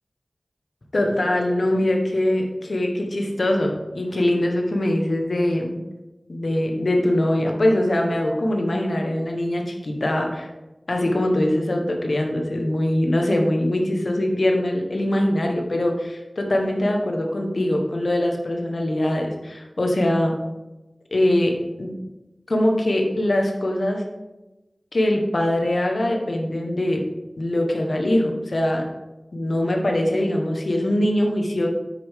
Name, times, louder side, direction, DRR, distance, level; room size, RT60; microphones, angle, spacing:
voice 1, 0.9-5.8 6.3-10.5 10.9-20.4 21.1-21.9 22.5-24.0 24.9-27.0 27.4-28.8 29.3-31.7, left 1 dB, 70° left, 2 dB, 1.3 m, -22 dB
8.2 x 6.5 x 3.7 m, 1.0 s
wide cardioid pair, 60°, 0 cm